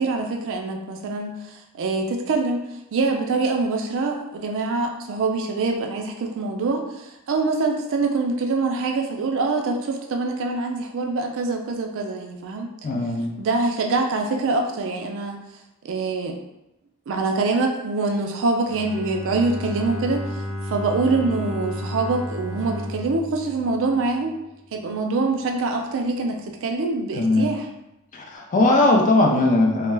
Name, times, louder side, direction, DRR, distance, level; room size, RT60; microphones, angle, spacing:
voice 1, 0.0-2.6 2.9-12.7 13.4-15.4 15.8-16.4 17.1-20.2 20.7-24.3 24.7-27.7, right 3 dB, 60° right, 3 dB, 0.4 m, -24 dB
voice 2, 12.8-13.3 27.1-27.5 28.1-29.9, left 2 dB, 35° left, 1 dB, 0.4 m, -19 dB
Bowed string instrument, 18.6-24.6, left 1 dB, 85° left, 0.7 m, -33 dB
2.2 x 2.1 x 3.2 m, 0.88 s
head